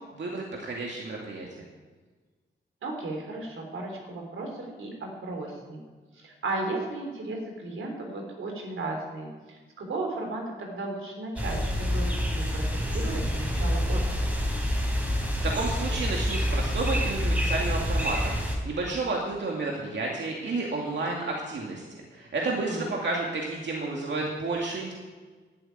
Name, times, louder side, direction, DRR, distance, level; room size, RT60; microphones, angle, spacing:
voice 1, 0.1-1.5 15.4-18.4 18.6-24.9, right 3 dB, 65° right, -1 dB, 2.2 m, -31 dB
voice 2, 2.8-5.8 6.1-14.2 22.4-22.9, right 2 dB, 85° right, 2 dB, 3.4 m, -35 dB
sound 1, 11.4-18.6, equal, 5° right, 3.5 m, -27 dB
12.0 x 8.1 x 9.3 m, 1.4 s
wide cardioid pair, 105°, 20 cm